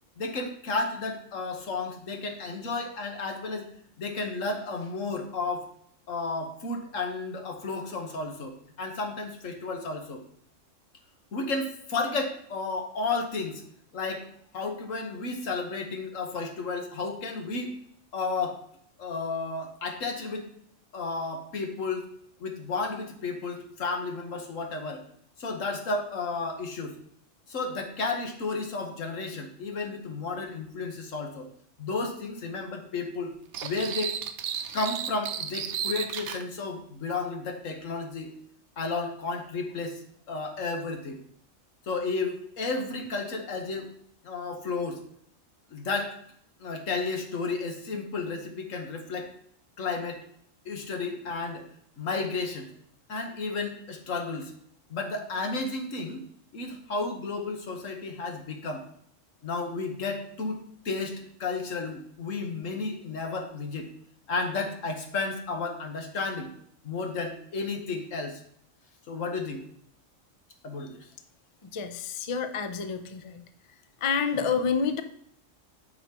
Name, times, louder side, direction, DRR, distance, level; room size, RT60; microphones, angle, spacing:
voice 1, 0.2-3.7 4.0-5.7 6.1-10.2 11.3-13.6 13.9-14.3 14.5-17.7 18.1-18.6 19.0-20.5 20.9-22.1 22.4-25.0 25.4-26.9 27.5-31.5 31.8-33.3 33.6-34.1 34.7-38.3 38.8-40.0 40.3-41.2 41.9-43.9 44.2-45.0 45.7-46.1 46.6-49.3 49.8-50.2 50.6-51.7 52.0-52.7 53.1-54.5 54.9-56.2 56.5-58.8 59.4-60.6 60.8-63.9 64.3-66.5 66.8-68.4 69.1-69.6 70.6-71.1, left 3 dB, 75° left, 4 dB, 1.5 m, -32 dB
sound 1, 33.5-36.4, right 8 dB, 70° right, 0.8 m, -33 dB
voice 2, 71.7-73.4 74.0-75.0, left 6 dB, 55° left, 9 dB, 0.3 m, -28 dB
9.2 x 5.7 x 2.9 m, 0.67 s
omnidirectional pair, 1.4 m